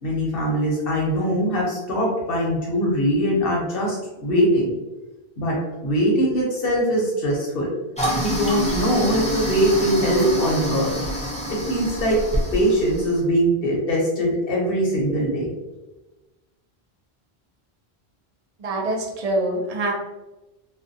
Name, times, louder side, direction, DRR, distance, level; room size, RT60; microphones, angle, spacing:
voice 1, 0.0-4.7 5.4-7.7 8.2-10.9 11.5-12.2 12.5-15.5, equal, 60° left, -2 dB, 0.9 m, -22 dB
Toilet flush, 8.0-13.2, equal, 10° left, 0.3 m, -26 dB
voice 2, 18.6-19.9, right 1 dB, 45° right, -1 dB, 0.5 m, -25 dB
2.4 x 2.2 x 2.6 m, 1.1 s
omnidirectional pair, 1.1 m